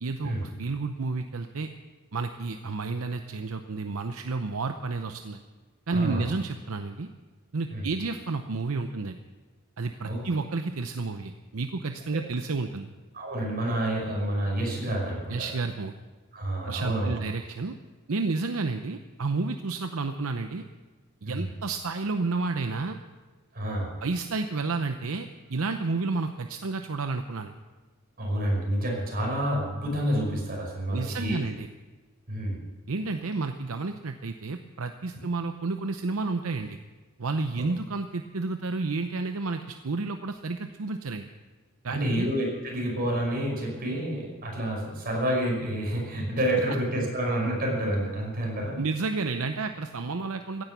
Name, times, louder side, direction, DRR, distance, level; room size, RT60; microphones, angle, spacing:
voice 1, 0.0-1.7 2.1-5.4 5.9-7.1 7.5-9.2 9.8-12.9 15.3-16.0 16.7-17.8 18.1-20.6 21.2-23.0 24.0-27.5 30.9-31.7 32.9-36.8 37.2-41.3 41.8-42.3 48.8-50.6, right 3 dB, 75° right, 7 dB, 0.7 m, -31 dB
voice 2, 5.9-6.3 7.7-7.9 10.1-10.2 13.1-15.3 16.3-17.1 21.3-21.5 23.5-23.9 28.2-31.4 32.3-32.6 41.9-48.8, right 1 dB, 45° right, -1 dB, 5.5 m, -28 dB
16.0 x 10.5 x 7.2 m, 1.3 s
head